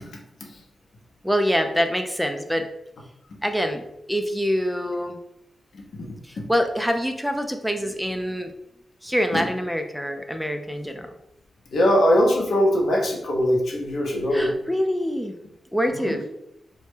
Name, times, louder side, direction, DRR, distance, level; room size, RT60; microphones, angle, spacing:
voice 1, 1.2-2.7 3.4-3.8 4.1-5.2 6.2-8.5 9.0-11.1 14.3-15.3 15.7-16.3, equal, ahead, 6 dB, 0.3 m, -25 dB
voice 2, 5.7-6.1 9.3-9.4 11.7-14.5 15.9-16.3, equal, 70° left, -1 dB, 0.6 m, -21 dB
2.1 x 2.0 x 3.1 m, 0.81 s
supercardioid pair, 40°, 0 cm